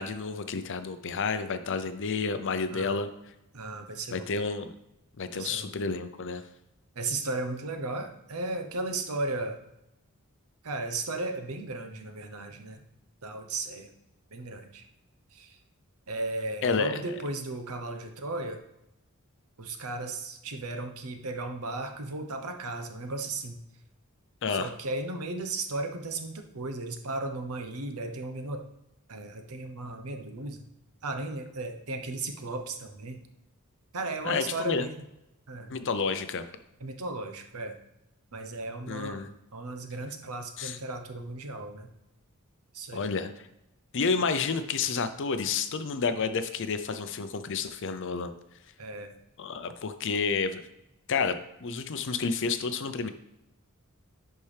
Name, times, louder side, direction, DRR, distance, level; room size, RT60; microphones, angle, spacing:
voice 1, 0.0-3.1 4.1-4.7 5.2-6.4 16.6-17.0 24.4-24.7 34.2-34.9 35.7-36.4 38.9-39.3 40.6-40.8 42.9-43.3 43.9-48.3 49.4-50.6 51.1-51.4 51.6-53.1, left 5 dB, 55° left, 10 dB, 0.6 m, -30 dB
voice 2, 3.5-4.3 5.3-5.7 7.0-9.6 10.6-12.8 13.2-13.9 14.3-14.8 15.3-15.6 16.1-18.6 19.6-23.6 24.5-28.6 29.1-30.6 31.0-33.2 33.9-35.0 35.5-35.7 36.8-37.7 38.3-41.9 42.7-43.1 48.8-49.1, right 2 dB, 70° right, 6 dB, 0.9 m, -35 dB
11.0 x 4.5 x 3.4 m, 0.88 s
head